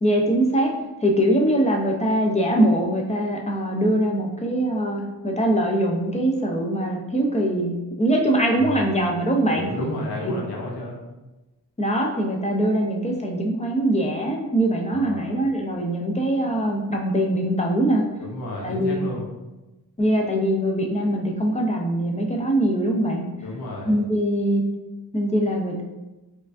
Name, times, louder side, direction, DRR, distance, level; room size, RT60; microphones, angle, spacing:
voice 1, 0.0-0.7 1.0-9.7 10.2-10.3 11.8-18.0 18.6-19.1 20.0-23.2 23.9-24.6 25.1-25.8, right 1 dB, 20° left, 0 dB, 0.5 m, -22 dB
voice 2, 8.6-9.0 9.5-11.0 14.9-15.4 18.2-19.2 23.4-24.0, left 1 dB, 85° left, -2 dB, 0.8 m, -32 dB
4.4 x 2.4 x 2.5 m, 1.1 s
cardioid pair, 90°, 38 cm